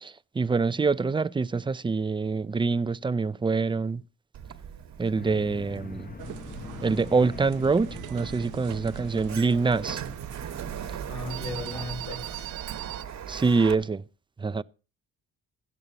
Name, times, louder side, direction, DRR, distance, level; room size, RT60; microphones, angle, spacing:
voice 1, 0.0-4.0 5.0-6.1 6.8-10.0 13.3-14.0 14.4-14.6, right 4 dB, 15° right, 0.5 m, -25 dB
Sliding door, 4.3-13.7, right 8 dB, 65° right, 1.5 m, -40 dB
sound 1, 5.1-10.2, left 5 dB, 30° left, 0.8 m, -43 dB
sound 2, 6.2-13.0, right 13 dB, 85° right, 0.7 m, -41 dB
voice 2, 11.1-12.5, left 2 dB, 80° left, 2.2 m, -36 dB
16.5 x 12.5 x 2.9 m
cardioid pair, 90°, 30 cm